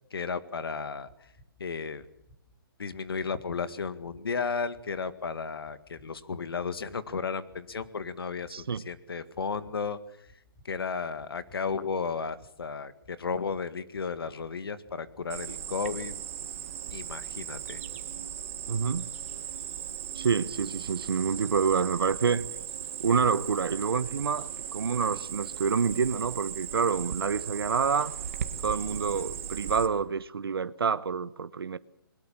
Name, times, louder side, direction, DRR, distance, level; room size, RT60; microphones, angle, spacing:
voice 1, 0.1-1.1 1.6-2.0 2.8-10.0 10.7-16.1 16.9-17.8, left 5 dB, 80° left, 2.0 m, -34 dB
sound 1, 1.1-1.5 2.0-2.4 2.9-3.3 3.8-4.2 4.7-5.1 5.7-6.1 6.6-7.0 7.5-7.9 8.4-8.8 9.3-9.8 10.3-10.7 11.2-11.6 12.1-12.5 13.0-13.4 13.9-14.4 14.9-15.3 15.8-16.2 16.7-17.1 17.6-18.0 18.5-19.0 19.5-19.6, equal, 20° left, 5.0 m, -58 dB
voice 2, 8.5-8.8 18.7-19.1 20.1-22.4 23.0-28.1 28.6-31.8, right 6 dB, 80° right, 1.0 m, -27 dB
Cricket, 15.3-29.9, right 9 dB, 35° right, 1.7 m, -38 dB
22.0 x 20.5 x 7.3 m
hypercardioid pair, 170°, 12 cm